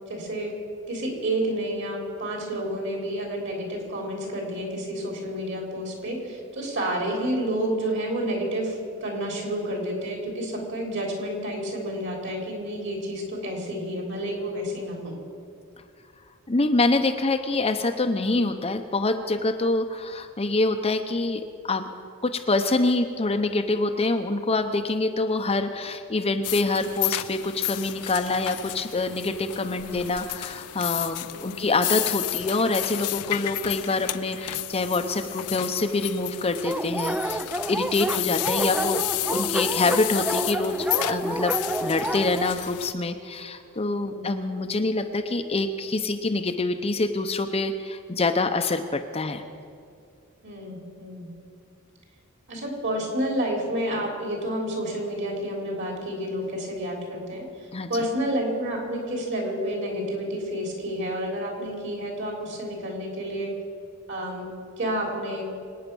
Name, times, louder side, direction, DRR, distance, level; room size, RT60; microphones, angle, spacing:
voice 1, 0.1-0.5 0.9-15.1 31.3-31.5 38.0-38.3 44.0-44.2 50.4-51.3 52.5-63.5 64.1-64.5 64.8-65.5, right 1 dB, 55° right, 1 dB, 3.8 m, -30 dB
voice 2, 16.5-21.8 22.2-39.0 39.3-49.4 57.7-57.9, left 2 dB, 25° left, 6 dB, 0.7 m, -26 dB
sound 1, 26.4-42.9, left 17 dB, 85° left, 0.4 m, -32 dB
Dog, 36.6-42.5, right 1 dB, 5° right, 0.4 m, -29 dB
25.0 x 9.4 x 6.2 m, 2.3 s
head